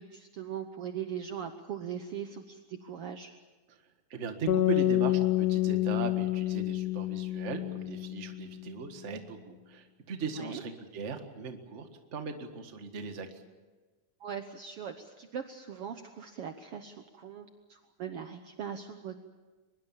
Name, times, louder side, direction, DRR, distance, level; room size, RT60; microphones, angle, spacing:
voice 1, 0.0-3.3 10.4-10.6 14.2-19.2, right 8 dB, 85° right, 7 dB, 1.3 m, -40 dB
voice 2, 4.1-13.4, right 5 dB, 40° right, 6 dB, 1.0 m, -39 dB
sound 1, 4.5-8.7, left 14 dB, 65° left, 2.6 m, -28 dB
23.0 x 21.5 x 7.3 m, 1.3 s
omnidirectional pair, 4.1 m